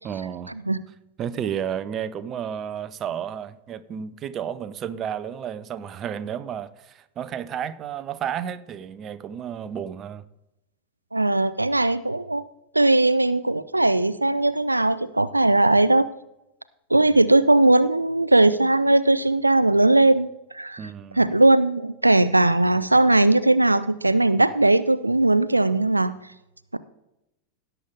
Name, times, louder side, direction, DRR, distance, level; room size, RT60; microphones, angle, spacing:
voice 1, 0.0-0.5 1.2-10.3 20.8-21.2, right 8 dB, 30° right, 0.6 m, -32 dB
voice 2, 11.1-12.4 12.7-16.1 16.9-20.3 20.5-20.8 21.2-26.1, right 2 dB, 85° right, 0.4 m, -19 dB
16.5 x 6.9 x 3.7 m
figure-of-eight pair, 90°, 0 cm